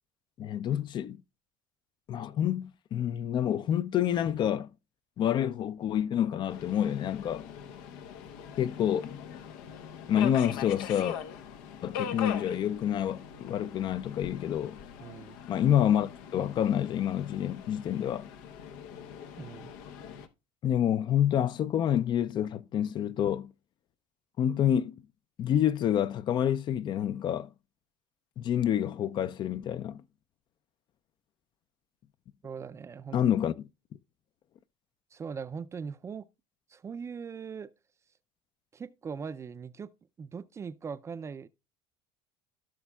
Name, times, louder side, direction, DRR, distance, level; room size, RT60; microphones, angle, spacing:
voice 1, 0.4-1.2 2.1-4.7 5.2-7.5 8.6-9.2 10.1-11.2 11.8-14.8 15.5-18.3 20.6-23.5 24.4-25.0 25.4-27.5 28.4-30.0 33.1-33.7, left 10 dB, 40° left, 0.4 m, -28 dB
Subway metro underground, 6.5-20.3, left 8 dB, 90° left, 0.8 m, -42 dB
voice 2, 15.0-15.4 19.4-19.7 32.4-33.2 35.1-36.3 36.7-37.7 38.7-39.9 40.2-41.5, right 6 dB, 25° right, 0.4 m, -40 dB
15.0 x 6.1 x 2.3 m
cardioid pair, 120°, 12 cm